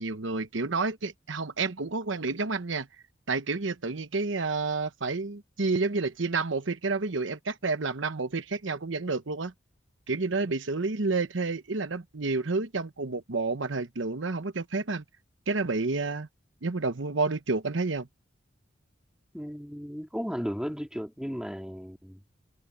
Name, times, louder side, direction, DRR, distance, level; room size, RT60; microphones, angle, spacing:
voice 1, 0.0-2.9 3.3-9.5 10.1-15.0 15.5-16.3 16.6-18.1, right 3 dB, 85° right, 1.0 m, -30 dB
voice 2, 19.3-22.2, equal, 5° right, 2.5 m, -35 dB
head